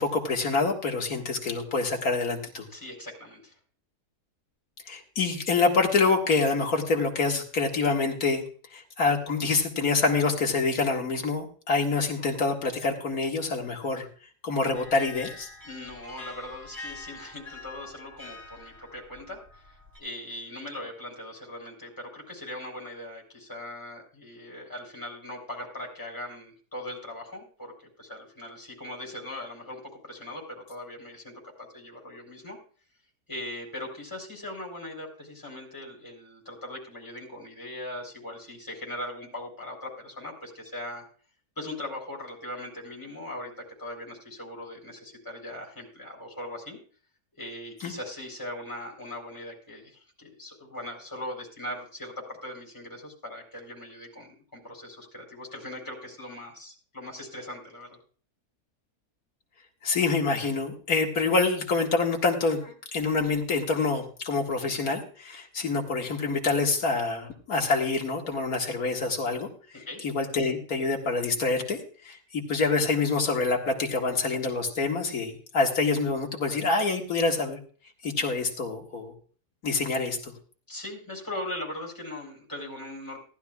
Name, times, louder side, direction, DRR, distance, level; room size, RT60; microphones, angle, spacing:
voice 1, 0.0-2.7 4.9-8.4 8.7-14.1 14.4-15.5 47.8-47.9 59.8-69.5 70.0-71.8 72.0-77.6 78.0-79.1 79.6-80.3, left 4 dB, 60° left, 1 dB, 2.2 m, -26 dB
voice 2, 2.7-3.6 15.6-27.7 28.0-32.6 33.3-41.1 41.6-46.8 47.3-58.0 69.7-70.0 80.7-83.2, left 1 dB, 10° left, -2 dB, 4.0 m, -40 dB
sound 1, 14.7-20.0, left 3 dB, 10° right, 7.8 m, -45 dB
18.5 x 12.0 x 2.4 m, 0.41 s
omnidirectional pair, 1.7 m